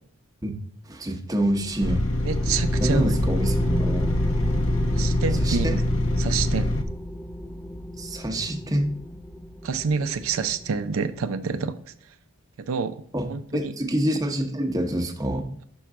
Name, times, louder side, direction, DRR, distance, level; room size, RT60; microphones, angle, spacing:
voice 1, 0.9-2.1 2.8-4.1 5.4-5.8 8.0-8.9 13.1-15.5, right 1 dB, 15° right, 3 dB, 0.8 m, -26 dB
sound 1, 1.4-11.4, equal, 10° left, 0.4 m, -33 dB
sound 2, 1.8-6.8, left 1 dB, 65° left, 0.7 m, -24 dB
voice 2, 2.2-3.1 4.9-5.7 6.2-6.7 9.6-11.7 12.7-13.0 13.3-13.7, right 5 dB, 80° right, 10 dB, 0.4 m, -27 dB
6.2 x 4.5 x 3.6 m, 0.64 s
head